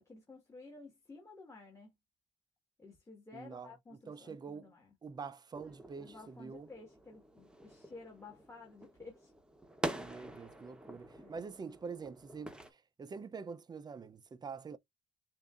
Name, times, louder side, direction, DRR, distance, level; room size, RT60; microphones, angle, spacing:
voice 1, 0.0-1.9 2.8-4.9 6.0-9.3 11.2-11.5, left 3 dB, 15° left, 1.7 m, -53 dB
voice 2, 3.3-3.7 4.1-4.7 5.0-6.7 9.9-14.8, right 5 dB, 25° right, 0.5 m, -46 dB
sound 1, 5.6-12.7, right 1 dB, 5° right, 1.0 m, -46 dB
6.8 x 2.6 x 2.4 m
cardioid pair, 110°, 17 cm